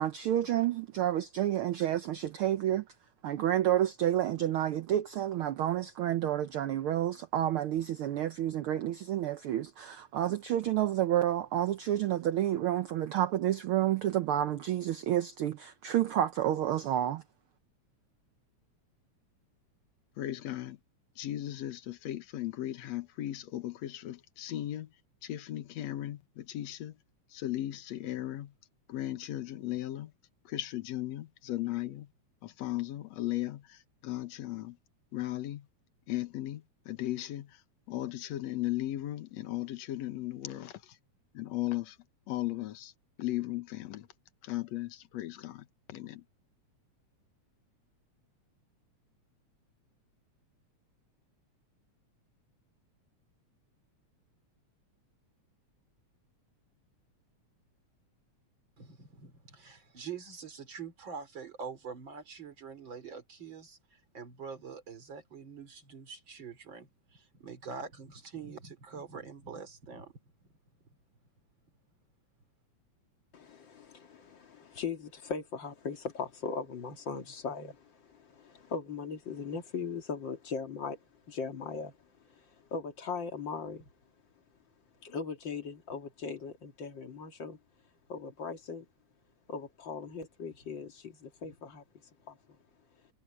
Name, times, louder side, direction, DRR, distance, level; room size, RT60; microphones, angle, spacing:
voice 1, 0.0-2.8 3.2-17.2, right 12 dB, 80° right, 1.2 m, -29 dB
voice 2, 20.2-20.8 21.2-24.9 25.2-27.0 27.3-28.5 28.9-30.1 30.5-32.1 32.4-34.8 35.1-35.7 36.1-37.6 37.9-41.0 41.3-42.0 42.3-42.9 43.2-44.1 44.4-46.2, left 14 dB, 70° left, 2.3 m, -36 dB
voice 3, 58.8-70.2, right 5 dB, 40° right, 4.5 m, -45 dB
voice 4, 73.3-81.0 81.3-82.0 82.3-83.9 85.0-87.6 88.1-88.9 89.5-91.8 92.3-92.4, left 5 dB, 45° left, 2.4 m, -39 dB
omnidirectional pair, 3.4 m